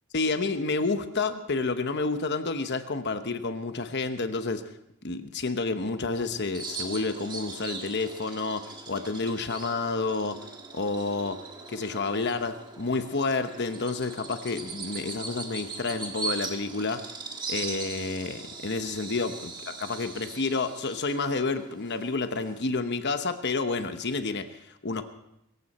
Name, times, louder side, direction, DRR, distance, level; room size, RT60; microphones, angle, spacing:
voice 1, 0.1-4.6 5.0-10.5 10.7-11.4 11.7-17.0 17.5-25.0, left 3 dB, 50° left, 9 dB, 1.0 m, -30 dB
Bird vocalization bird call bird song, 6.5-22.6, right 3 dB, 20° right, 1.6 m, -40 dB
23.0 x 14.5 x 4.3 m, 0.82 s
head